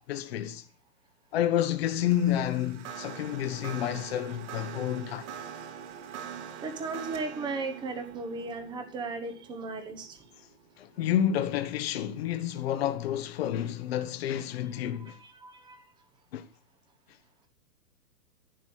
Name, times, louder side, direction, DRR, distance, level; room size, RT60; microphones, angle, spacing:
voice 1, 0.1-0.6 1.3-5.3 10.8-15.2 16.3-16.5, left 11 dB, 40° left, 1.2 m, -29 dB
sound 1, 1.9-11.3, right 8 dB, 45° right, 2.3 m, -44 dB
voice 2, 6.6-10.2 15.1-15.8, right 3 dB, 10° right, 1.2 m, -36 dB
11.5 x 9.1 x 8.4 m
hypercardioid pair, 160°, 49 cm